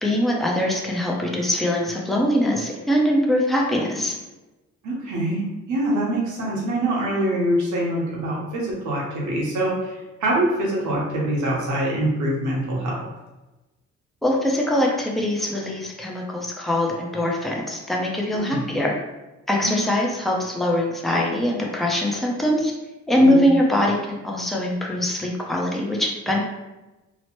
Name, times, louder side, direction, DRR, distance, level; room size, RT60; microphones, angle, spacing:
voice 1, 0.0-4.2 14.2-18.9 19.5-22.7 23.1-26.4, left 1 dB, ahead, -2 dB, 0.5 m, -22 dB
voice 2, 4.8-13.0 18.3-18.6 19.6-19.8 23.2-23.4, right 1 dB, 75° right, -4 dB, 1.0 m, -24 dB
3.0 x 2.0 x 3.0 m, 1.1 s
cardioid pair, 90°, 30 cm